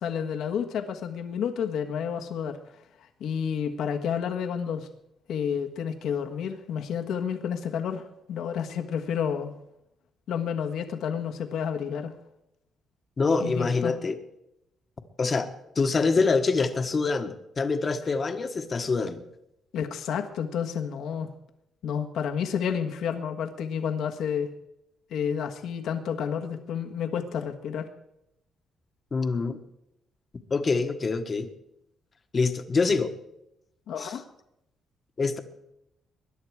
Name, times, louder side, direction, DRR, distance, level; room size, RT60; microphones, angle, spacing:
voice 1, 0.0-2.6 3.2-4.9 5.3-9.5 10.3-12.1 13.4-13.9 19.7-21.3 21.8-24.5 25.1-27.9 33.9-34.2, left 7 dB, 75° left, 5 dB, 1.5 m, -30 dB
voice 2, 13.2-14.2 15.2-15.5 15.7-19.2 29.1-29.6 30.5-31.5 32.3-33.1 34.0-34.1 35.2-35.4, left 4 dB, 35° left, 8 dB, 1.3 m, -25 dB
21.0 x 11.0 x 4.8 m, 0.82 s
cardioid pair, 110°, 0 cm